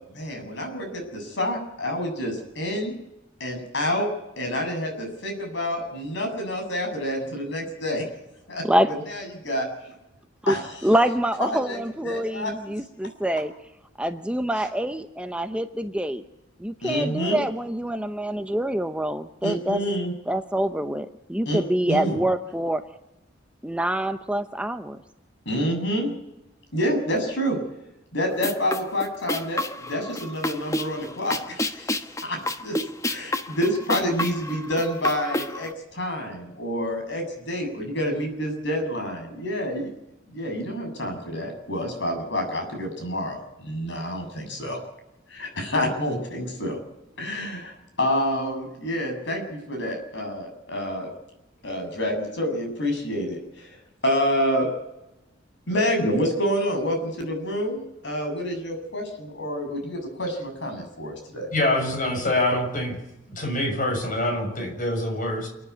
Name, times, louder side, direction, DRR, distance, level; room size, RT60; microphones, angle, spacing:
voice 1, 0.1-2.9 3.4-4.1 4.4-8.0 8.5-8.6 9.1-9.7 10.5-10.6 11.4-11.8 12.0-12.5 16.8-17.4 19.4-20.1 21.5-21.6 21.9-22.2 25.5-26.1 26.7-27.6 28.1-31.9 32.2-32.8 33.0-39.9 40.3-44.8 45.3-46.8 47.2-51.1 51.6-53.8 54.0-54.7 55.7-61.5, equal, 65° left, 4 dB, 7.3 m, -28 dB
voice 2, 10.8-13.5 14.0-16.2 16.6-19.8 20.3-22.8 23.6-25.0, right 1 dB, 5° right, 8 dB, 0.8 m, -25 dB
sound 1, 28.3-35.7, left 1 dB, 15° left, 1.2 m, -30 dB
voice 3, 61.5-63.0 63.3-65.5, left 1 dB, 45° left, 3 dB, 6.7 m, -25 dB
29.0 x 10.5 x 9.7 m, 0.93 s
head